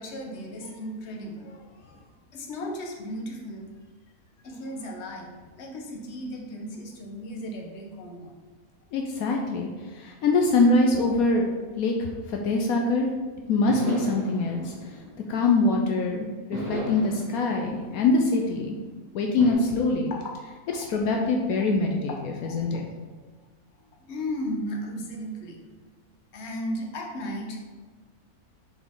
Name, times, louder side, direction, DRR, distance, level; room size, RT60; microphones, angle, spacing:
voice 1, 0.0-2.0 2.3-3.7 4.4-8.3 19.6-19.7 20.1-20.3 22.4-22.6 24.1-25.6 26.3-27.6, equal, 50° left, 0 dB, 1.2 m, -35 dB
voice 2, 8.9-11.5 11.8-13.1 13.5-14.7 15.3-18.8 19.1-20.1 20.7-22.1 22.4-22.8, left 3 dB, 75° left, 1 dB, 1.1 m, -24 dB
sound 1, 13.7-15.9 16.5-18.8 19.4-19.5, equal, 80° right, 2.2 m, -36 dB
7.0 x 4.2 x 3.7 m, 1.4 s
omnidirectional pair, 1.5 m